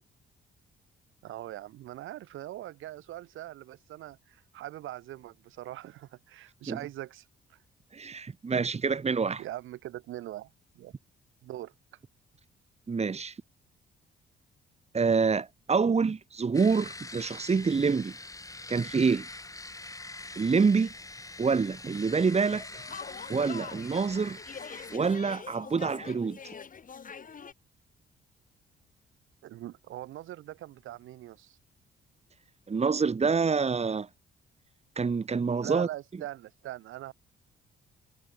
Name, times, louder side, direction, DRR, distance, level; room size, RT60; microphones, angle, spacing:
voice 1, 1.2-7.6 9.4-10.9 11.4-11.7 29.4-31.6 35.6-37.1, right 14 dB, 85° right, 4.2 m, -42 dB
voice 2, 7.9-9.4 12.9-13.3 14.9-18.2 18.7-19.3 20.4-20.9 21.4-22.8 23.3-24.4 24.9-26.4 32.7-34.1 35.0-35.9, right 5 dB, 30° right, 3.0 m, -26 dB
sound 1, 16.5-25.0, left 2 dB, 15° left, 4.6 m, -44 dB
sound 2, 22.5-27.5, left 6 dB, 40° left, 4.4 m, -44 dB
cardioid pair, 90°, 20 cm